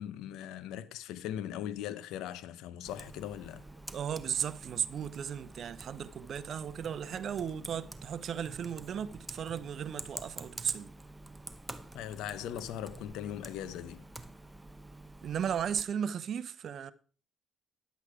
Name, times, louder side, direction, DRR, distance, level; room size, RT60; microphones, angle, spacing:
voice 1, 0.0-3.6 11.9-14.0, left 11 dB, 80° left, 0.7 m, -39 dB
Computer keyboard, 2.8-15.8, right 2 dB, 10° right, 0.9 m, -48 dB
voice 2, 3.9-10.9 15.2-16.9, right 8 dB, 55° right, 0.7 m, -35 dB
10.5 x 8.3 x 4.8 m
cardioid pair, 90°, 0 cm